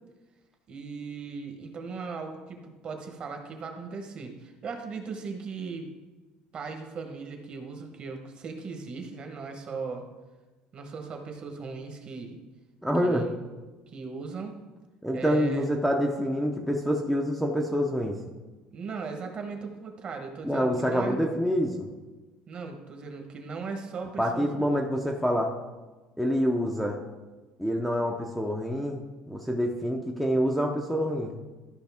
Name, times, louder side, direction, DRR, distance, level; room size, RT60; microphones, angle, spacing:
voice 1, 0.7-5.9 6.5-10.0 10.7-12.4 13.0-13.3 13.9-14.6 15.1-15.7 18.7-21.2 22.5-24.6, right 4 dB, 35° right, 4 dB, 1.1 m, -38 dB
voice 2, 12.8-13.3 15.0-18.2 20.4-21.9 24.2-25.5 26.2-27.0 27.6-29.0 29.3-31.4, equal, ahead, -1 dB, 0.6 m, -26 dB
13.0 x 5.2 x 3.5 m, 1.2 s
cardioid pair, 160°, 3 cm